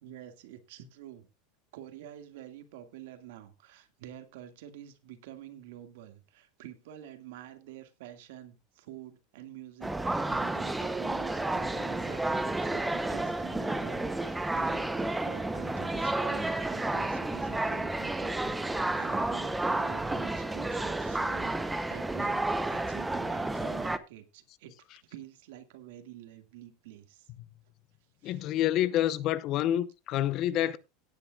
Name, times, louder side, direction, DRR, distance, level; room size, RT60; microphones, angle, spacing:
voice 1, 0.0-1.3 1.7-24.7 25.0-27.3 28.2-28.4, right 12 dB, 75° right, 2.0 m, -48 dB
sound 1, 9.8-24.0, right 2 dB, 5° right, 0.7 m, -31 dB
voice 2, 28.2-30.8, left 12 dB, 40° left, 0.8 m, -28 dB
17.5 x 9.6 x 2.4 m
supercardioid pair, 145°, 0 cm